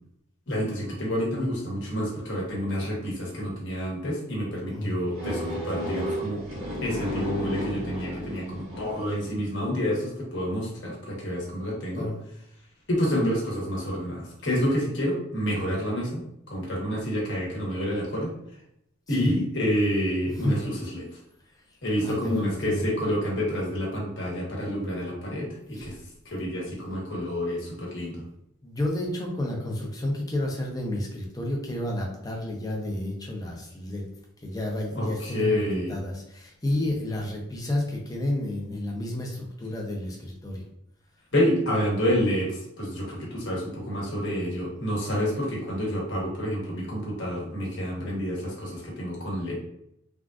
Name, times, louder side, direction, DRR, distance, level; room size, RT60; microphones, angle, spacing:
voice 1, 0.5-6.4 6.8-12.1 12.9-18.3 19.1-21.2 21.8-25.9 26.2-28.2 35.0-35.9 41.3-49.5, equal, 55° left, -3 dB, 1.1 m, -28 dB
sound 1, 5.1-9.2, equal, 90° right, 1.3 m, -33 dB
voice 2, 22.0-22.8 25.7-26.0 28.6-34.1 34.4-40.6, left 1 dB, 15° left, -1 dB, 0.6 m, -31 dB
3.5 x 2.5 x 2.4 m, 0.76 s
head